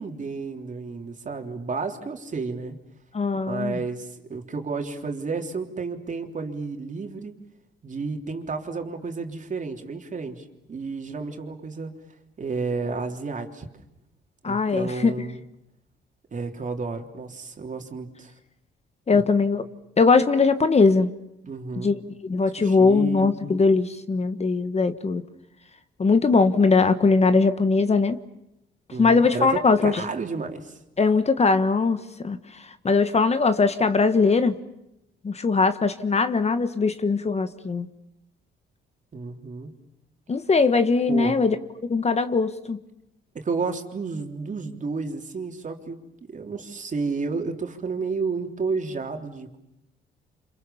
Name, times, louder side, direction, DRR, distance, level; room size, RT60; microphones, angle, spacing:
voice 1, 0.0-2.8 3.5-7.4 7.8-12.0 12.4-13.7 14.5-15.4 16.3-18.3 19.1-19.2 21.4-21.9 22.6-23.4 28.9-30.8 39.1-39.7 41.1-41.4 43.3-46.0 46.3-49.6, right 4 dB, 40° right, 4 dB, 3.5 m, -31 dB
voice 2, 3.1-3.8 14.4-15.1 19.1-19.6 20.0-21.1 21.8-25.2 26.0-28.2 29.0-29.9 31.0-32.4 32.8-34.5 35.2-37.9 40.3-41.5 41.9-42.8, left 4 dB, 35° left, 11 dB, 1.4 m, -20 dB
29.5 x 27.0 x 7.1 m, 0.86 s
cardioid pair, 90°, 20 cm